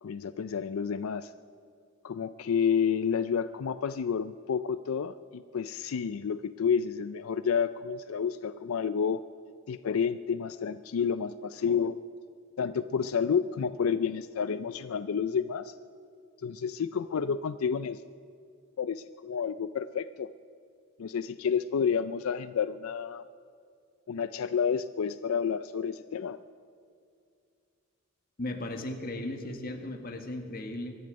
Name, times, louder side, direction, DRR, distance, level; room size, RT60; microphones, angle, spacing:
voice 1, 0.0-1.3 2.0-9.2 9.7-12.0 12.6-15.7 16.4-18.0 18.8-20.3 21.0-23.2 24.1-26.4, left 6 dB, 90° left, 13 dB, 0.4 m, -30 dB
voice 2, 28.4-30.9, left 1 dB, 45° left, 5 dB, 1.6 m, -36 dB
23.5 x 11.0 x 5.3 m, 2.3 s
head